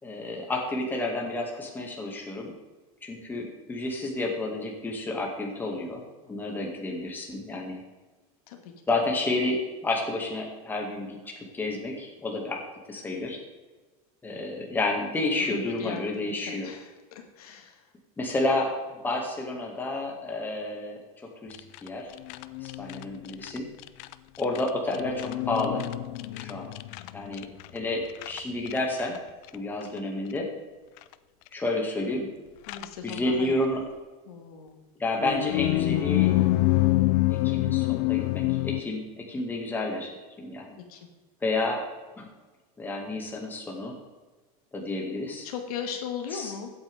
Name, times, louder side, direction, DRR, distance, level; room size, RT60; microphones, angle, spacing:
voice 1, 0.0-2.5 3.0-7.8 8.9-13.4 14.2-16.7 18.2-21.0 21.4-21.6 21.8-22.1 22.6-23.7 24.4-25.8 26.4-26.7 27.1-27.5 27.7-29.2 29.5-30.5 31.5-32.3 33.0-33.8 35.0-36.4 37.4-40.7 41.4-41.8 42.2-42.3 42.8-44.0 44.7-45.5 46.3-46.5, left 2 dB, 10° left, -1 dB, 2.2 m, -30 dB
voice 2, 15.5-17.9 32.7-33.5 34.3-34.8 40.9-41.1 45.4-46.7, left 7 dB, 80° left, 4 dB, 1.8 m, -38 dB
sound 1, 21.5-21.9 22.1-24.1 24.4-27.8 28.1-28.4 28.7-29.2 29.5-29.6 29.8-29.9 31.0-31.1 32.7-33.2 35.2-38.8, left 18 dB, 50° left, 0.5 m, -26 dB
15.5 x 8.7 x 3.6 m, 1.3 s
supercardioid pair, 150°, 19 cm